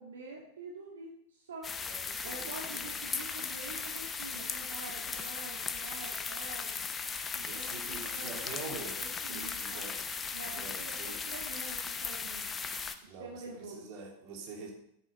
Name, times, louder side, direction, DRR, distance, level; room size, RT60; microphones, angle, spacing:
voice 1, 0.0-1.7 2.2-6.8 7.3-8.5 9.0-10.0 10.3-12.5 12.9-13.9, right 3 dB, 65° right, -1 dB, 1.9 m, -47 dB
sound 1, 1.6-13.0, left 5 dB, 20° left, 0.8 m, -37 dB
voice 2, 1.8-2.9 7.3-10.0 10.5-11.2 13.1-13.4 13.7-14.7, right 4 dB, 40° right, 0 dB, 3.1 m, -45 dB
9.7 x 9.2 x 5.6 m, 0.75 s
figure-of-eight pair, 90°, 0 cm